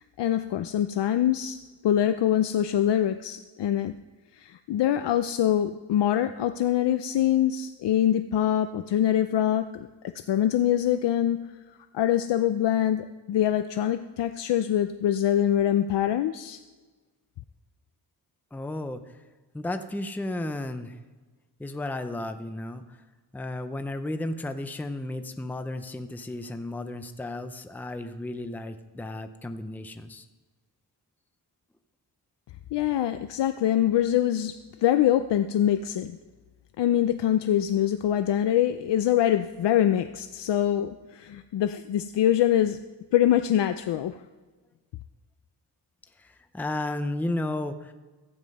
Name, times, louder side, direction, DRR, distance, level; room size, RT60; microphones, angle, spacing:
voice 1, 0.0-1.6 1.8-3.9 4.3-11.4 11.9-16.6 32.7-36.2 36.8-42.8 43.1-44.2, left 11 dB, 80° left, 9 dB, 0.6 m, -24 dB
voice 2, 18.5-19.0 19.5-21.0 21.6-23.0 23.3-30.3 46.2-47.9, left 2 dB, 5° left, 8 dB, 0.6 m, -33 dB
14.0 x 9.6 x 5.4 m, 1.3 s
wide cardioid pair, 170°, 42 cm